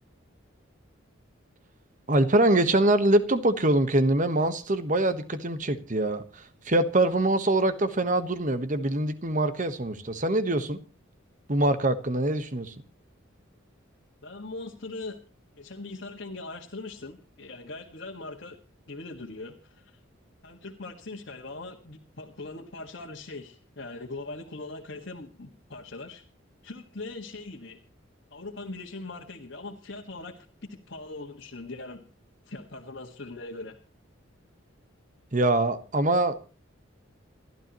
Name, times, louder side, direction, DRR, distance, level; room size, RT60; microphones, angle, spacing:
voice 1, 2.1-10.8 11.5-12.7 35.3-36.3, right 1 dB, 40° right, 1.3 m, -24 dB
voice 2, 14.2-15.2 15.6-18.6 18.9-20.0 20.4-26.2 26.6-27.8 28.3-32.0 32.5-33.8, left 2 dB, 55° left, 1.8 m, -41 dB
29.0 x 12.5 x 3.1 m
head